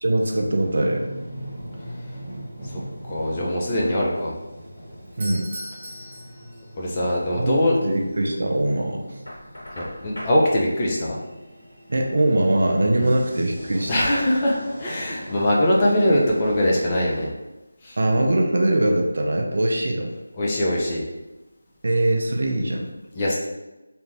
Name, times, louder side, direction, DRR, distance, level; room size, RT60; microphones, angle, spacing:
voice 1, 0.0-1.0 5.2-5.5 7.4-9.0 11.9-13.9 18.0-20.1 21.8-22.9, right 1 dB, 60° right, 2 dB, 0.4 m, -22 dB
sound 1, 0.6-17.3, equal, 10° right, 0.8 m, -41 dB
voice 2, 3.1-4.3 6.8-8.0 9.8-11.2 12.9-13.1 13.9-17.3 17.8-18.0 20.4-21.0 23.2-23.3, left 1 dB, 25° left, -4 dB, 0.5 m, -22 dB
Doorbell, 5.1-7.0, right 1 dB, 35° right, 1.0 m, -38 dB
Knock, 9.3-10.4, equal, 65° left, 1.1 m, -38 dB
2.5 x 2.2 x 3.2 m, 1.0 s
figure-of-eight pair, 165°, 0 cm